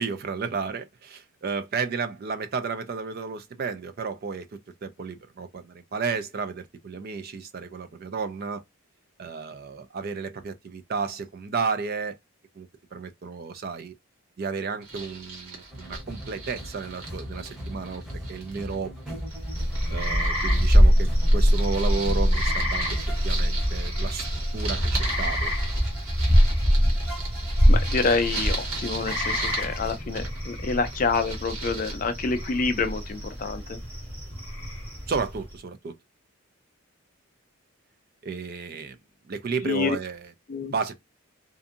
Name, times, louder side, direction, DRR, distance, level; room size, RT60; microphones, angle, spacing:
voice 1, 0.0-8.6 9.2-12.2 12.6-13.9 14.4-18.0 18.3-19.2 19.9-24.3 24.5-25.5 35.1-35.9 38.2-39.0 39.3-40.3 40.7-40.9, right 5 dB, 45° right, 0.4 m, -32 dB
sound 1, 14.8-18.8 19.1-33.5, right 3 dB, 80° right, 1.3 m, -38 dB
sound 2, 15.7-29.9, equal, ahead, 0.8 m, -41 dB
sound 3, 19.3-35.5, equal, 25° right, 1.1 m, -24 dB
voice 2, 27.7-33.8 39.7-40.0 40.5-40.7, left 4 dB, 35° left, 0.4 m, -27 dB
2.6 x 2.5 x 2.5 m
head